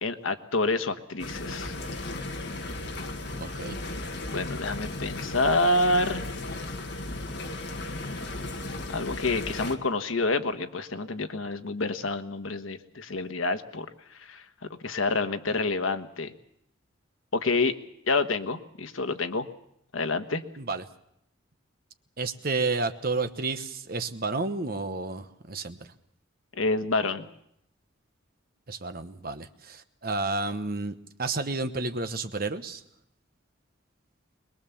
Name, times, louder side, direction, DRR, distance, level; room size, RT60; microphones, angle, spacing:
voice 1, 0.0-1.8 4.3-6.3 8.9-13.9 14.3-14.4 14.8-16.3 17.3-17.7 18.1-19.5 19.9-20.4 26.5-27.3, left 2 dB, 85° left, 9 dB, 1.3 m, -28 dB
sound 1, 1.2-9.8, left 2 dB, 60° left, 1.9 m, -35 dB
voice 2, 3.4-3.8 20.6-20.8 22.2-25.9 28.7-32.8, right 3 dB, 45° right, 9 dB, 1.1 m, -31 dB
22.5 x 21.0 x 7.2 m, 0.73 s
head